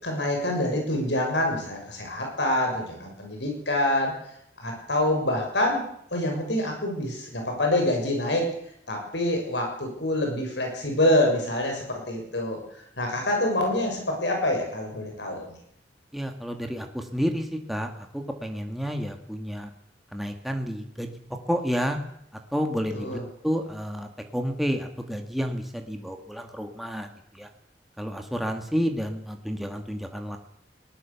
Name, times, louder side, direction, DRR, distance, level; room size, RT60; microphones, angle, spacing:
voice 1, 0.0-4.1 4.6-5.8 6.1-8.5 8.9-12.6 13.0-15.5 22.9-23.2, left 1 dB, 75° left, 2 dB, 6.7 m, -26 dB
voice 2, 16.1-19.7 20.1-21.1 21.5-22.0 22.5-27.5 28.0-30.4, equal, ahead, 4 dB, 1.9 m, -30 dB
21.5 x 19.0 x 7.2 m, 0.72 s
head